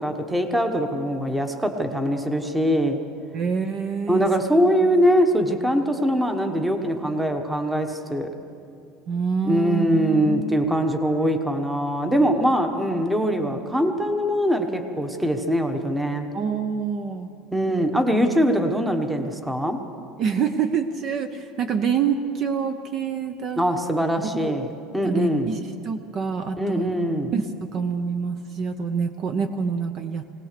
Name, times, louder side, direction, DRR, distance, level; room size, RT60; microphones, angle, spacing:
voice 1, 0.0-3.0 4.1-8.3 9.4-16.3 17.5-19.8 23.6-25.5 26.6-27.3, equal, 5° right, 6 dB, 1.1 m, -22 dB
voice 2, 3.3-4.3 9.1-10.6 16.3-17.3 20.2-23.6 24.3-24.5 25.0-25.6 25.8-26.9 27.3-30.2, right 6 dB, 35° right, 8 dB, 0.7 m, -26 dB
21.5 x 18.0 x 6.7 m, 2.6 s
cardioid pair, 160°, 0 cm